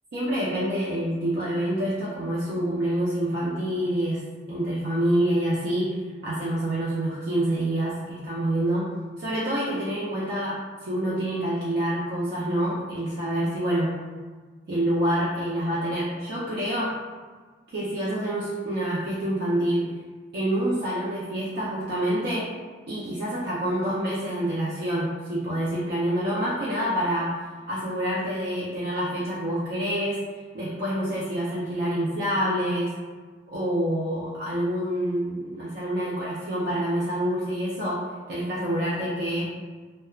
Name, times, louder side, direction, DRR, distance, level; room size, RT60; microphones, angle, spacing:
voice 1, 0.1-8.9 9.2-14.0 14.7-16.9 17.7-19.9 20.3-22.5 22.9-27.3 27.7-30.2 30.5-32.9 33.5-39.5, right 1 dB, 65° right, -8 dB, 0.5 m, -27 dB
3.0 x 2.1 x 2.3 m, 1.4 s
head